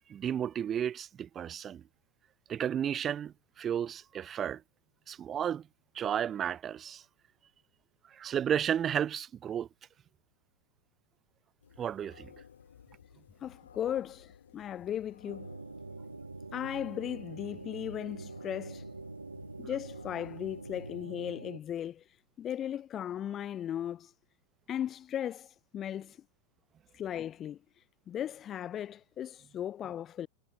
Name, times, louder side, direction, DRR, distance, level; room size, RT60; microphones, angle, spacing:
voice 1, 0.0-1.8 2.5-4.6 5.1-5.7 5.9-7.0 8.1-9.7 11.8-12.3, right 9 dB, 25° right, 1.2 m, -33 dB
sound 1, 11.6-21.1, left 7 dB, 70° left, 5.5 m, -55 dB
voice 2, 13.4-15.5 16.5-18.9 19.6-24.1 24.7-26.2 26.9-27.6 28.1-30.3, left 10 dB, 30° left, 0.3 m, -37 dB
sound 2, 15.3-21.6, right 3 dB, 80° right, 3.5 m, -45 dB
figure-of-eight pair, 90°, 0 cm